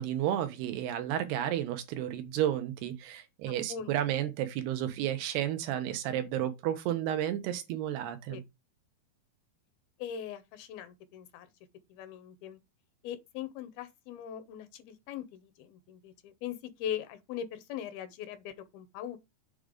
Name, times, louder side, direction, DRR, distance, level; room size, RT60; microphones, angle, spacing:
voice 1, 0.0-8.4, right 11 dB, 90° right, 3.1 m, -32 dB
voice 2, 3.7-4.1 8.3-8.4 10.0-11.5 11.9-12.6 13.0-19.2, left 9 dB, 80° left, 2.6 m, -40 dB
7.8 x 3.7 x 5.1 m
omnidirectional pair, 4.5 m